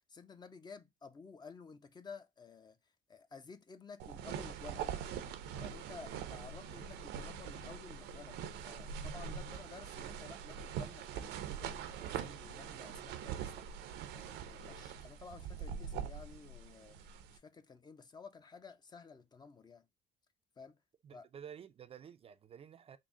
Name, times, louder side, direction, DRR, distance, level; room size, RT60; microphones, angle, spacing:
voice 1, 0.1-2.8 3.1-4.9 5.6-13.7 14.1-19.9 20.6-20.8 21.1-21.3, left 5 dB, 25° left, 0.5 m, -53 dB
sound 1, 4.0-17.4, right 8 dB, 80° right, 0.6 m, -43 dB
voice 2, 21.0-23.0, right 8 dB, 35° right, 0.4 m, -52 dB
3.7 x 2.1 x 3.5 m
cardioid pair, 110°, 17 cm